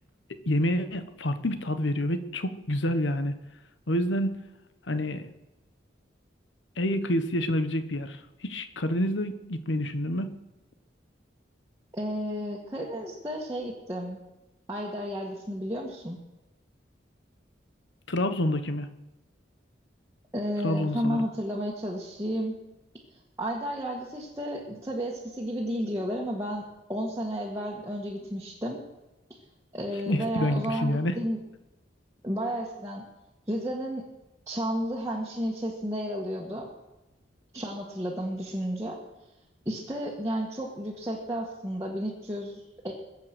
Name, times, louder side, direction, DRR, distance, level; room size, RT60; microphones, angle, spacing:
voice 1, 0.5-3.3 3.9-4.5 4.9-5.3 6.8-10.4 18.1-18.9 20.6-21.2 30.1-31.2, left 1 dB, 90° left, 10 dB, 1.2 m, -28 dB
voice 2, 11.9-14.2 14.7-16.2 20.3-22.5 23.4-26.6 26.9-28.8 29.7-31.4 32.2-33.0 33.5-34.0 34.5-36.7 37.5-39.0 39.6-42.9, equal, 15° right, -3 dB, 1.7 m, -32 dB
22.0 x 7.6 x 6.2 m, 1.0 s
head